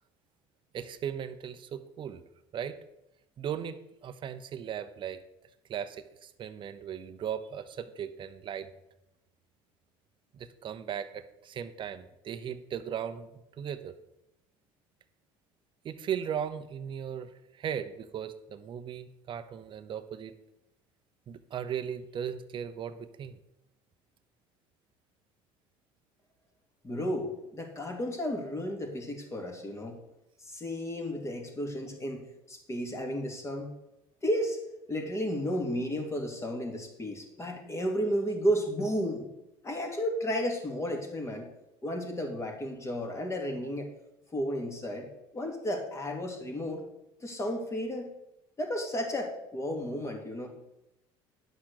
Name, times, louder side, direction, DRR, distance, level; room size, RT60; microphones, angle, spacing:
voice 1, 0.7-2.2 2.5-2.8 3.4-5.2 5.7-8.7 10.3-13.9 15.8-20.3 21.3-23.4, right 8 dB, 40° right, 10 dB, 0.9 m, -37 dB
voice 2, 26.8-30.0 30.4-32.2 32.5-33.7 34.2-34.6 34.9-39.3 39.6-41.5 41.8-43.9 44.3-45.1 45.3-46.8 47.2-48.1 48.6-50.5, equal, 20° left, 2 dB, 2.7 m, -33 dB
10.5 x 6.0 x 6.6 m, 0.88 s
supercardioid pair, 105°, 12 cm